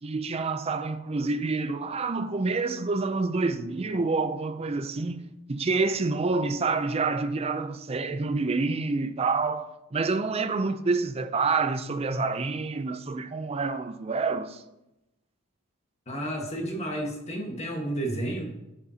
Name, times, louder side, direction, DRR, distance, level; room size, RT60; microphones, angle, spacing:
voice 1, 0.0-5.2 5.5-14.6, right 3 dB, 30° right, 0.4 m, -28 dB
voice 2, 16.1-18.5, right 1 dB, 30° left, 1.4 m, -31 dB
11.0 x 7.3 x 2.8 m
head